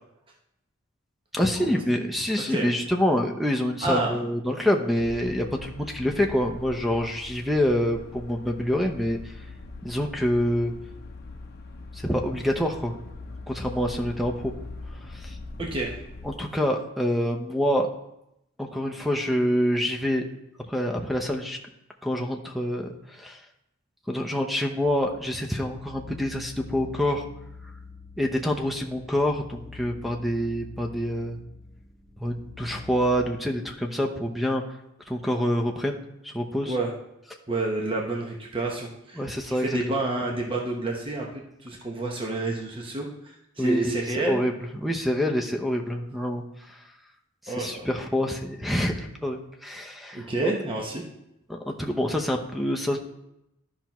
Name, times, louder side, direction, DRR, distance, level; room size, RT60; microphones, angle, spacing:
voice 1, 1.3-9.3 9.8-10.7 11.9-12.9 13.5-14.5 15.1-15.4 16.2-17.9 18.6-20.2 20.6-21.6 22.0-23.4 24.1-27.2 28.2-31.4 32.2-34.6 35.1-36.8 39.2-39.8 43.6-43.9 44.2-46.8 47.4-50.5 51.5-53.0, equal, ahead, 3 dB, 0.7 m, -26 dB
voice 2, 3.8-4.2 15.6-15.9 36.7-36.9 37.5-44.4 47.5-47.9 50.1-51.0, right 2 dB, 25° right, -1 dB, 0.9 m, -29 dB
sound 1, 5.0-16.3, left 2 dB, 50° left, 0.7 m, -42 dB
sound 2, 24.8-33.2, left 4 dB, 15° left, 1.3 m, -46 dB
13.0 x 5.7 x 3.0 m, 0.84 s
head